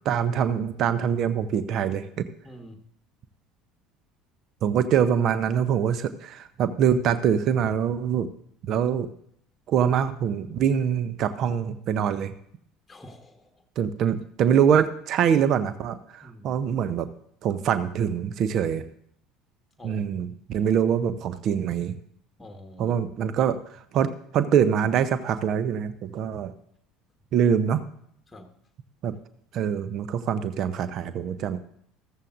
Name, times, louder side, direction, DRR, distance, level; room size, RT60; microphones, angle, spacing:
voice 1, 0.0-2.2 4.6-8.3 8.7-9.1 9.7-12.3 13.8-17.1 17.4-18.8 19.8-21.9 22.8-23.6 23.9-26.5 27.3-27.8 29.0-29.1 29.5-31.6, right 8 dB, 45° right, 13 dB, 0.7 m, -24 dB
voice 2, 2.4-2.8 12.9-13.6 16.2-16.6 19.8-20.0 20.6-20.7 22.4-23.0 28.3-28.5, left 1 dB, 10° left, 4 dB, 1.4 m, -46 dB
14.5 x 14.0 x 2.6 m, 0.67 s
figure-of-eight pair, 65°, 0 cm